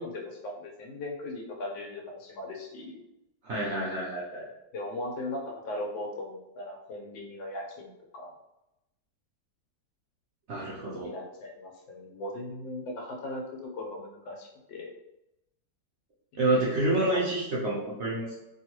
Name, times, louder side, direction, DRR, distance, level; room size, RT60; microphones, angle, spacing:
voice 1, 0.0-3.0 4.7-8.3 11.0-14.9 16.4-16.8 17.1-17.2, left 1 dB, 90° left, 0 dB, 1.5 m, -38 dB
voice 2, 3.4-4.4 10.5-11.1 16.4-18.3, right 2 dB, 65° right, -7 dB, 0.7 m, -28 dB
3.4 x 2.3 x 2.9 m, 0.90 s
omnidirectional pair, 1.9 m